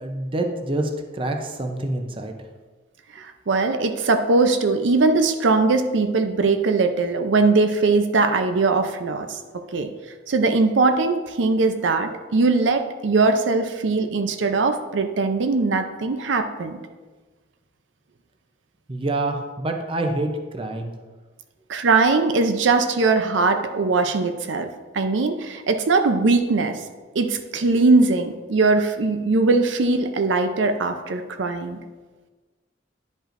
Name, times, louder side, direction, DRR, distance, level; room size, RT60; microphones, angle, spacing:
voice 1, 0.0-2.4 18.9-20.9, right 2 dB, 30° right, 4 dB, 0.6 m, -27 dB
voice 2, 3.1-9.4 9.7-9.9 10.3-16.8 21.7-26.8 27.2-31.8, right 3 dB, 75° right, 7 dB, 0.5 m, -20 dB
10.5 x 5.3 x 2.5 m, 1.3 s
head